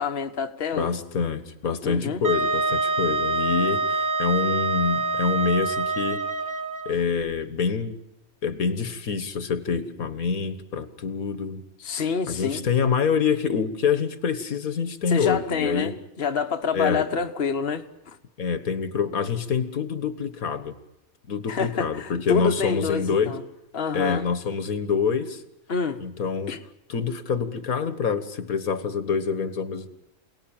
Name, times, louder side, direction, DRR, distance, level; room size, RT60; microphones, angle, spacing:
voice 1, 0.0-0.9 1.8-2.2 11.8-12.7 15.1-18.2 21.5-23.4 23.7-24.3 25.7-26.0 26.5-26.6, left 6 dB, 45° left, 1.5 m, -27 dB
voice 2, 0.7-6.2 6.9-8.0 8.4-11.6 12.3-15.9 16.7-17.1 18.4-20.7 21.3-23.4 23.9-25.4 26.0-26.5 26.9-29.9, left 6 dB, 80° left, 2.0 m, -26 dB
Wind instrument woodwind instrument, 2.2-6.9, right 3 dB, 40° right, 1.8 m, -26 dB
28.0 x 18.5 x 9.0 m
omnidirectional pair, 1.5 m